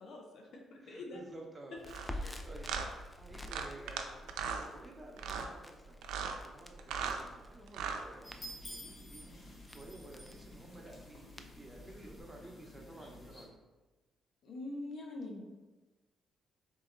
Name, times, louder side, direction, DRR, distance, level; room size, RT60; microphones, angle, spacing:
voice 1, 0.0-1.2 2.1-2.4 14.4-15.5, left 2 dB, 65° left, 0 dB, 0.9 m, -45 dB
voice 2, 0.8-1.8 2.4-9.4 9.7-13.6, right 1 dB, 15° right, -1 dB, 0.9 m, -53 dB
Crackle, 1.8-12.2, left 1 dB, 10° left, 0.4 m, -50 dB
sound 1, 1.9-2.1 2.6-2.9 3.5-4.0 4.3-4.7 5.2-5.5 6.0-6.4 6.8-7.2 7.7-8.0, right 6 dB, 85° right, 0.4 m, -37 dB
sound 2, 8.2-13.4, left 1 dB, 40° left, 1.2 m, -51 dB
4.1 x 2.8 x 3.9 m, 1.2 s
cardioid pair, 90°, 0 cm